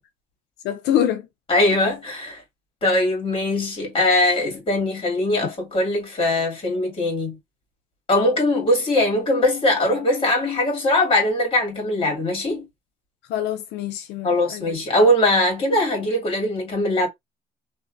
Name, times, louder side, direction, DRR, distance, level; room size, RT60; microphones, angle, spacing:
voice 1, 0.6-1.3 13.3-14.7, left 10 dB, 80° left, 0.4 m, -25 dB
voice 2, 1.5-2.4 2.8-7.4 8.1-12.7 14.2-17.1, left 1 dB, 30° left, 1.9 m, -21 dB
3.0 x 2.6 x 2.4 m
cardioid pair, 110°, 17 cm